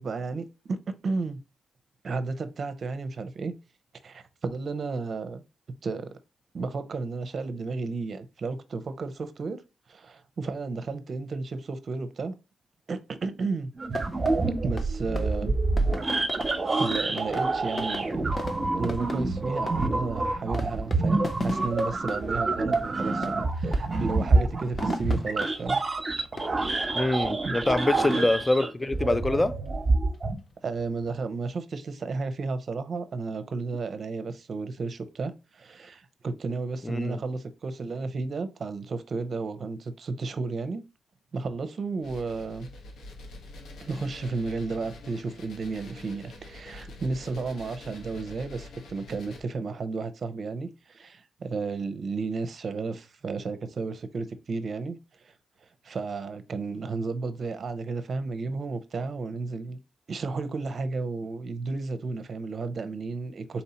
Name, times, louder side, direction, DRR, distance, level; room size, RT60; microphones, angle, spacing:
voice 1, 0.0-1.4 2.0-3.5 4.0-5.4 5.8-6.1 6.5-9.6 9.9-12.3 12.9-13.7 14.6-15.6 16.8-18.2 18.6-25.8 26.6-27.0 27.4-27.6 28.0-28.4 30.6-40.8 41.3-42.7 43.9-55.0 55.8-59.8 60.1-63.6, right 4 dB, 55° right, 0.6 m, -33 dB
sound 1, 13.8-30.4, right 3 dB, 35° right, 1.1 m, -27 dB
sound 2, 13.9-31.5, left 3 dB, 40° left, 0.7 m, -42 dB
voice 2, 26.9-29.6 36.8-37.2, left 2 dB, 20° left, 0.4 m, -25 dB
sound 3, 42.0-49.4, left 2 dB, 80° left, 0.9 m, -46 dB
4.2 x 2.7 x 4.2 m
cardioid pair, 70°, 0 cm